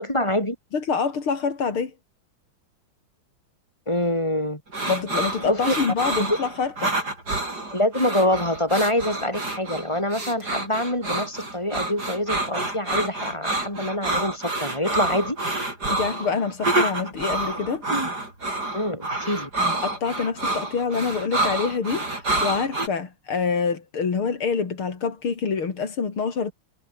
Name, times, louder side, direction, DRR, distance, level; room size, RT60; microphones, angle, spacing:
voice 1, 0.0-0.6 3.9-4.6 5.4-5.8 6.2-6.4 7.7-15.4 18.7-19.5, left 1 dB, 15° left, 7.6 m, -25 dB
voice 2, 0.7-1.9 4.9-7.0 15.9-17.8 19.8-22.0 22.4-26.5, left 5 dB, 85° left, 4.0 m, -26 dB
sound 1, 4.7-22.9, right 2 dB, 50° right, 7.5 m, -28 dB
omnidirectional pair, 2.3 m